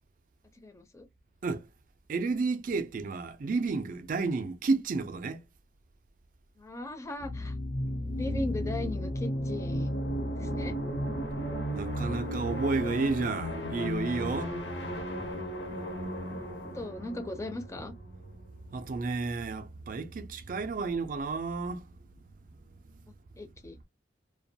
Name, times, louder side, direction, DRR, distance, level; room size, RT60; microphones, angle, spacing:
voice 1, 0.6-1.0 6.6-7.5 8.2-10.0 10.3-10.7 16.7-17.9 23.4-23.8, left 1 dB, 15° left, 0.5 m, -38 dB
voice 2, 2.1-5.4 11.7-14.5 18.7-21.8, right 4 dB, 45° right, 0.4 m, -31 dB
sound 1, 7.2-18.7, equal, 70° left, 0.8 m, -34 dB
2.3 x 2.2 x 2.6 m
head